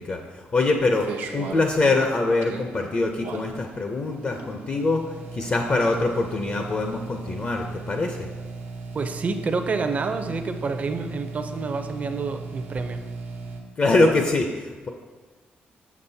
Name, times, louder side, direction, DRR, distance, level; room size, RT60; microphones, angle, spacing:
voice 1, 0.0-5.0 5.3-8.3 13.8-14.9, left 3 dB, 40° left, 3 dB, 0.6 m, -24 dB
sound 1, 0.6-13.6, right 4 dB, 90° right, 0.7 m, -37 dB
voice 2, 8.9-13.0, right 4 dB, 40° right, 7 dB, 0.5 m, -28 dB
7.2 x 6.2 x 2.7 m, 1.4 s
cardioid pair, 105°, 4 cm